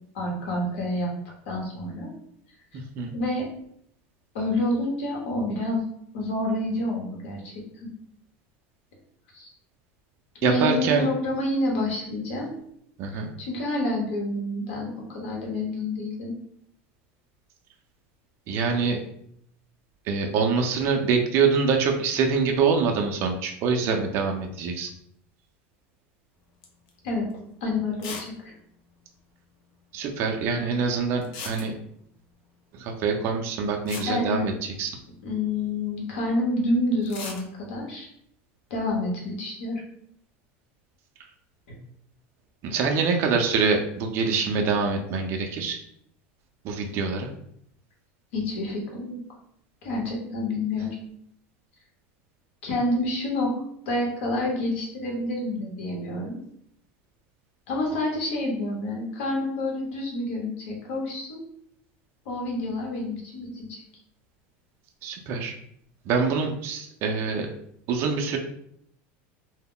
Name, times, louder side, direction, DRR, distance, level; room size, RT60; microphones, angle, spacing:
voice 1, 0.1-1.1 1.5-2.1 2.7-2.8 3.1-3.5 4.3-5.8 6.1-7.9 9.3-9.5 10.4-12.5 13.1-16.3 27.0-27.3 27.6-28.5 34.1-34.5 35.2-38.1 38.7-39.8 48.3-49.2 49.8-50.9 52.6-53.5 53.9-56.4 57.7-61.4 62.2-63.8, left 1 dB, 85° left, -1 dB, 0.9 m, -28 dB
voice 2, 10.4-11.1 13.0-13.3 18.5-19.0 20.1-24.9 29.9-31.7 32.7-35.0 42.6-45.8 46.6-47.3 65.0-65.5 66.1-67.5 67.9-68.4, right 5 dB, 40° right, 3 dB, 0.4 m, -25 dB
sound 1, 26.6-26.9 27.3-27.4 28.0-28.3 28.6-28.7 28.9-29.0 31.2-32.1 33.4-33.5 33.9-35.1 37.0-37.5, left 4 dB, 55° left, 0.6 m, -38 dB
2.2 x 2.0 x 3.6 m, 0.71 s
supercardioid pair, 145°, 6 cm